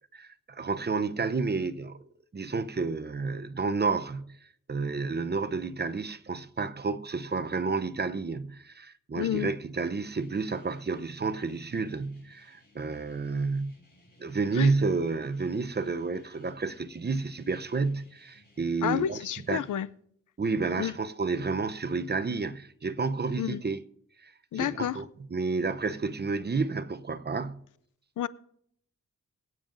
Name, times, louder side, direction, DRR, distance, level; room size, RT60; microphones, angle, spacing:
voice 1, 0.1-2.0 2.3-13.7 14.2-19.2 19.5-19.7 20.4-23.8 24.2-27.6, right 4 dB, 35° right, 0.7 m, -30 dB
voice 2, 9.2-9.5 14.6-14.7 18.8-19.9 20.8-20.9 23.4-23.6 24.5-25.0 28.2-28.3, left 10 dB, 80° left, 0.5 m, -30 dB
sound 1, 10.1-19.8, left 1 dB, 35° left, 4.8 m, -61 dB
23.5 x 8.9 x 2.6 m
cardioid pair, 60°, 31 cm